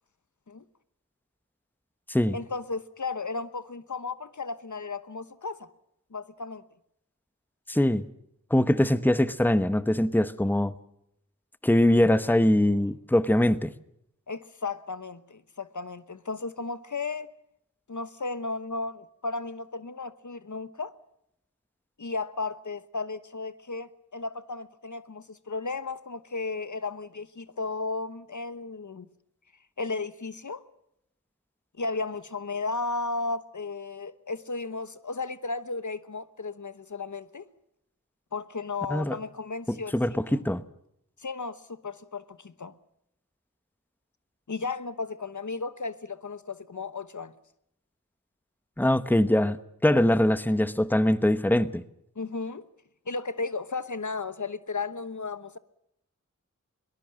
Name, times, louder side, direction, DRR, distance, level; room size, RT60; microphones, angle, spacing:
voice 1, 2.3-5.7 6.1-6.6 12.7-12.9 14.3-17.3 17.9-20.9 22.0-29.1 29.8-30.6 31.8-37.4 38.3-40.0 40.3-40.4 41.2-42.7 44.5-47.3 52.2-52.6 53.1-55.6, left 3 dB, 70° left, 1.0 m, -34 dB
voice 2, 7.7-8.0 8.5-10.7 11.6-13.7 38.9-39.2 39.7-40.6 48.8-49.6 49.8-51.8, left 1 dB, 5° left, 1.0 m, -22 dB
22.5 x 19.0 x 7.5 m
wide cardioid pair, 45°, 31 cm